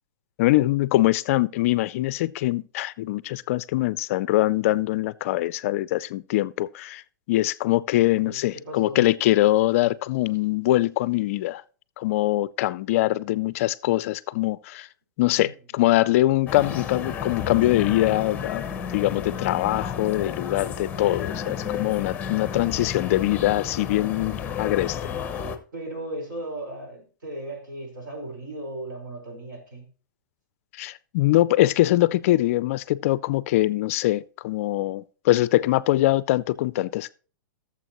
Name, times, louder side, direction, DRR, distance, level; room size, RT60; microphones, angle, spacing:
voice 1, 0.4-7.0 7.3-11.6 12.0-14.9 15.2-18.6 18.9-25.0 30.8-37.1, left 16 dB, 45° left, 0.4 m, -23 dB
voice 2, 8.7-9.1 15.3-15.5 25.7-29.8, right 1 dB, 75° right, 4.5 m, -36 dB
sound 1, 16.5-25.6, left 7 dB, 15° left, 0.7 m, -32 dB
16.5 x 7.1 x 3.0 m
hypercardioid pair, 155°, 11 cm